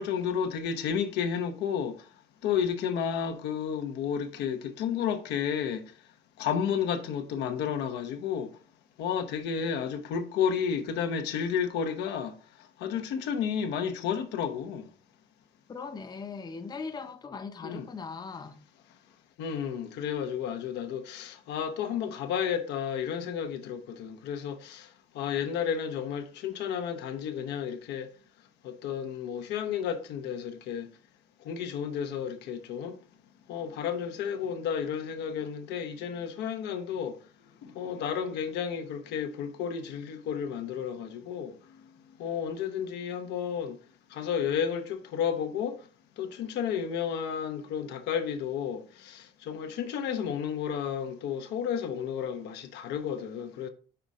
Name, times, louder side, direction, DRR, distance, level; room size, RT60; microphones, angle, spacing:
voice 1, 0.0-2.1 2.4-5.9 6.4-8.5 9.0-12.4 12.8-14.9 17.6-17.9 19.4-24.9 25.1-28.1 28.6-30.9 31.4-33.0 33.5-37.2 37.6-41.6 42.2-43.8 44.1-45.8 46.2-53.7, left 7 dB, 85° left, 0.9 m, -32 dB
voice 2, 15.7-18.6, left 5 dB, 25° left, 0.6 m, -39 dB
5.7 x 3.6 x 5.2 m
cardioid pair, 110°, 17 cm